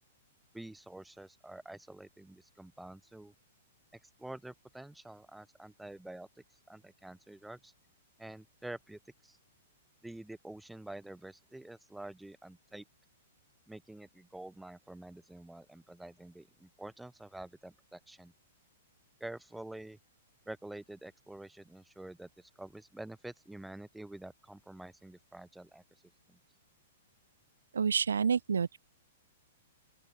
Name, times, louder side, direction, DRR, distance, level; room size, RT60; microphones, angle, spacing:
voice 1, 0.5-3.3 4.2-6.3 6.7-7.7 8.2-9.4 10.0-12.8 13.7-18.3 19.2-20.0 20.5-25.8 26.3-26.4, right 1 dB, 5° right, 3.5 m, -48 dB
voice 2, 27.7-28.8, right 6 dB, 70° right, 1.0 m, -28 dB
open air
figure-of-eight pair, 105°, 0 cm